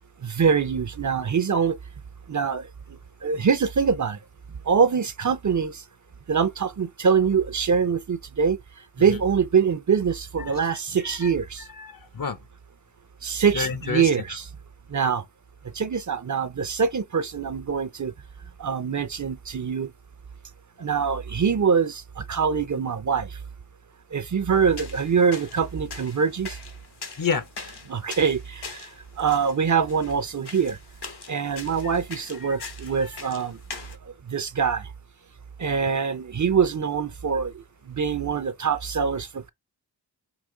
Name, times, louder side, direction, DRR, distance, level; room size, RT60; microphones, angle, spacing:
voice 1, 0.2-1.8 2.3-2.7 3.2-4.2 4.7-5.8 6.3-8.6 9.0-11.6 13.2-14.4 14.9-15.2 15.7-18.1 18.6-19.9 20.8-23.3 24.1-26.6 27.9-28.9 29.2-30.8 31.3-33.6 34.3-34.8 35.6-37.5 37.9-39.5, right 6 dB, 45° right, 0.6 m, -24 dB
voice 2, 10.4-10.7 11.0-11.3 11.7-12.4 13.5-14.4 27.2-27.5 31.8-31.9 32.4-32.7 33.0-33.2, left 5 dB, 55° left, 0.7 m, -31 dB
sound 1, 24.5-34.0, left 4 dB, 70° left, 1.0 m, -42 dB
4.9 x 2.5 x 3.7 m
cardioid pair, 45°, 41 cm